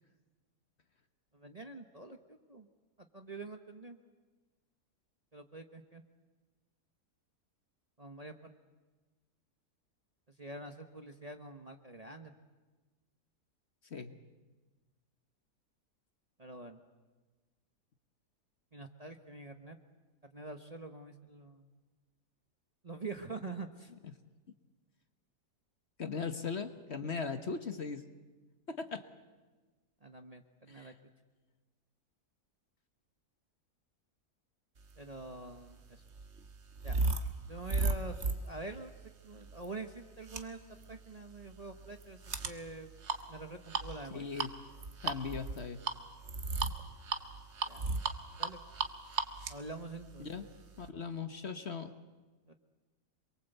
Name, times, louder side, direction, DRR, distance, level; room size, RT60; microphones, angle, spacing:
voice 1, 1.3-2.7 3.0-4.0 5.3-6.0 8.0-8.5 10.4-12.3 16.4-16.8 18.7-19.8 20.2-21.7 22.8-23.9 30.0-30.9 35.0-36.0 36.8-37.0 37.5-38.9 39.2-40.6 40.9-42.9 43.3-44.3 47.7-47.8 48.4-48.6 49.5-50.5 52.5-52.6, right 3 dB, 25° right, 6 dB, 1.0 m, -46 dB
voice 2, 26.0-28.0 28.7-29.0 30.7-30.9 44.1-44.5 45.0-45.8 50.2-50.4 50.8-51.9, left 5 dB, 45° left, 9 dB, 1.3 m, -38 dB
sound 1, 35.2-50.9, right 3 dB, 45° right, 1.5 m, -37 dB
28.0 x 22.5 x 8.1 m, 1.3 s
omnidirectional pair, 1.7 m